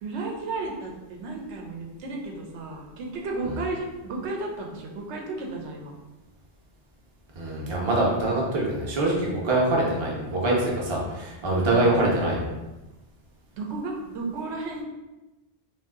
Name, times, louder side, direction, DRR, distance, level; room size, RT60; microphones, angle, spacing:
voice 1, 0.0-5.9 11.4-12.0 13.5-14.8, right 3 dB, 85° right, 0 dB, 0.9 m, -33 dB
voice 2, 7.3-12.5, right 2 dB, 30° right, -3 dB, 0.6 m, -24 dB
2.6 x 2.3 x 3.6 m, 1.1 s
omnidirectional pair, 1.1 m